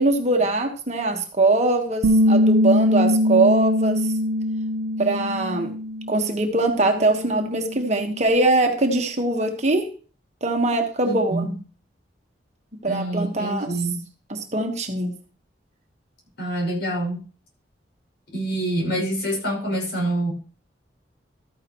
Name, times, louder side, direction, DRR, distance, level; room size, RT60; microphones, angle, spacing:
voice 1, 0.0-4.0 5.0-5.7 6.1-9.9 10.4-11.5 12.8-13.7 14.3-15.1, right 2 dB, 40° right, 4 dB, 1.4 m, -22 dB
Bass guitar, 2.0-6.4 6.7-8.3, left 1 dB, 70° right, 0.7 m, -22 dB
voice 2, 11.0-11.6 12.9-14.0 16.4-17.2 18.3-20.3, right 1 dB, 65° left, 0 dB, 6.1 m, -26 dB
13.5 x 9.7 x 3.0 m, 0.38 s
head